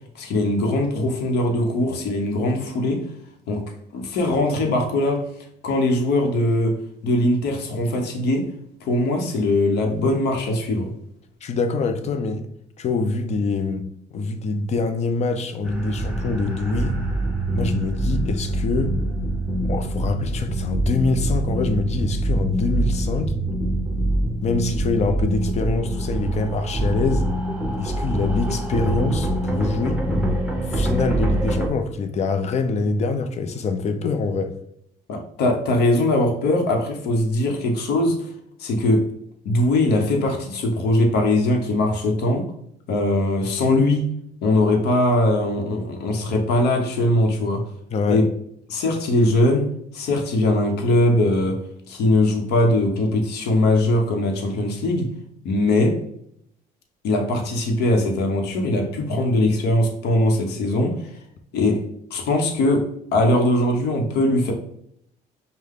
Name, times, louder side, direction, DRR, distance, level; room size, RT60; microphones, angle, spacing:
voice 1, 0.1-3.1 3.5-5.3 5.6-8.5 8.8-10.9 35.1-38.3 38.6-39.1 39.4-42.5 42.9-44.1 44.4-47.6 48.1-48.3 48.7-51.6 51.9-55.1 55.4-56.0 57.0-61.1 61.5-64.5, left 1 dB, 75° left, 0.9 m, -21 dB
voice 2, 11.4-12.5 12.8-16.9 17.5-19.0 19.7-23.4 24.4-27.3 27.8-34.6 47.9-48.3, left 4 dB, 40° left, 0.6 m, -25 dB
sound 1, 15.6-31.7, right 1 dB, 5° right, 0.9 m, -24 dB
5.5 x 2.2 x 3.6 m
cardioid pair, 110°, 17 cm